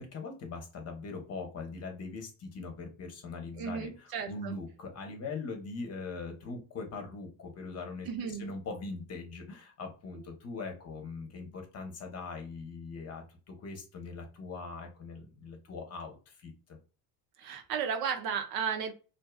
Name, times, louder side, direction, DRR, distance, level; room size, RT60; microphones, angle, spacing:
voice 1, 0.0-16.8, left 4 dB, 40° left, 0.8 m, -41 dB
voice 2, 3.6-4.5 8.1-8.5 17.4-18.9, right 7 dB, 60° right, 0.6 m, -34 dB
2.6 x 2.3 x 2.2 m
supercardioid pair, 100°, 41 cm